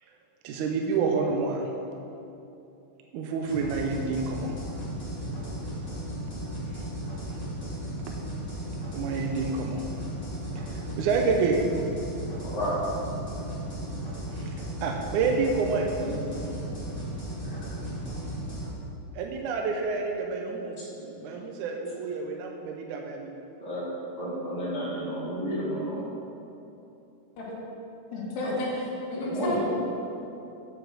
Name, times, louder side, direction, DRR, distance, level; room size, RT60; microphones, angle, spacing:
voice 1, 0.4-1.7 3.1-4.5 8.1-8.2 8.9-9.8 10.6-11.6 14.3-14.5 14.8-15.9 19.2-20.9 21.2-23.3, right 4 dB, 80° right, 1 dB, 1.9 m, -28 dB
sound 1, 3.4-18.7, right 1 dB, 65° left, 0.5 m, -35 dB
voice 2, 12.4-12.8 16.0-16.2 17.4-17.6 21.0-21.3 23.6-23.9 24.2-26.0 28.4-28.5 29.1-29.7, equal, 20° left, -11 dB, 1.1 m, -32 dB
voice 3, 28.1-29.7, left 1 dB, 80° left, -5 dB, 2.9 m, -32 dB
7.9 x 5.3 x 6.2 m, 2.8 s
omnidirectional pair, 3.9 m